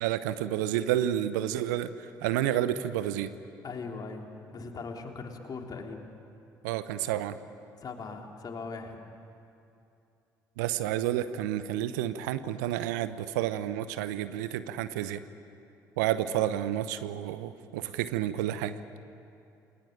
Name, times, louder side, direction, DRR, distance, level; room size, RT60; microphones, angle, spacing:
voice 1, 0.0-3.3 6.6-7.4 10.6-15.2 16.0-18.8, right 12 dB, 70° right, 13 dB, 0.9 m, -30 dB
voice 2, 3.6-6.1 7.8-9.0, left 4 dB, 40° left, 2 dB, 3.5 m, -40 dB
29.0 x 20.5 x 8.9 m, 2.7 s
figure-of-eight pair, 55°, 10 cm